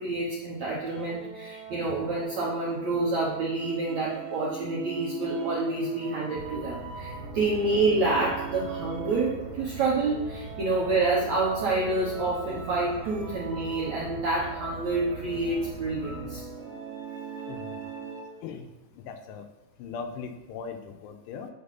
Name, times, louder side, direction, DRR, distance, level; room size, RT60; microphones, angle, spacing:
voice 1, 0.0-16.4, right 3 dB, 70° right, -5 dB, 1.7 m, -28 dB
sound 1, 0.8-18.5, right 6 dB, 40° right, 1.6 m, -41 dB
sound 2, 6.4-16.4, right 2 dB, 55° right, 2.8 m, -42 dB
voice 2, 17.5-17.9 18.4-19.5 19.8-21.5, left 5 dB, 85° left, 5 dB, 2.8 m, -39 dB
8.7 x 4.5 x 5.7 m, 1.1 s
omnidirectional pair, 5.0 m